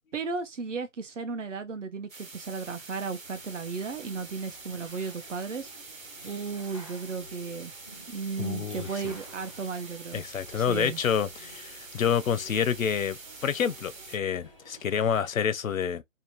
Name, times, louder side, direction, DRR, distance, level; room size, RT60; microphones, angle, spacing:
voice 1, 0.1-5.7 6.2-7.7 8.1-10.2 10.5-11.0, right 5 dB, 65° right, 0.8 m, -35 dB
sound 1, 2.1-14.2, right 3 dB, 85° right, 1.2 m, -46 dB
sound 2, 3.2-15.3, right 1 dB, 25° right, 0.5 m, -52 dB
voice 2, 8.4-8.9 10.1-16.0, left 7 dB, 80° left, 0.6 m, -28 dB
2.8 x 2.2 x 2.9 m
figure-of-eight pair, 155°, 40 cm